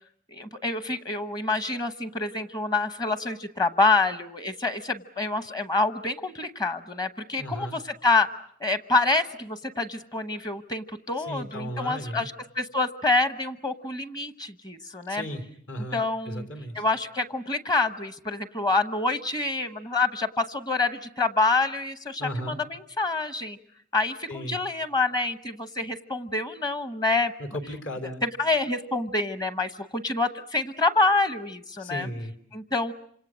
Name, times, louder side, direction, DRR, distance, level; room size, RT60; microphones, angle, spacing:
voice 1, 0.3-8.3 8.6-15.2 15.9-16.5 16.7-23.6 23.9-27.3 28.2-32.1 32.5-32.9, left 3 dB, 20° left, 11 dB, 1.0 m, -27 dB
voice 2, 7.4-7.8 11.3-12.3 15.1-16.0 16.2-16.8 22.2-22.6 24.3-24.6 27.4-28.2 31.8-32.3, equal, 65° left, 7 dB, 3.4 m, -35 dB
27.5 x 26.5 x 6.3 m, 0.66 s
head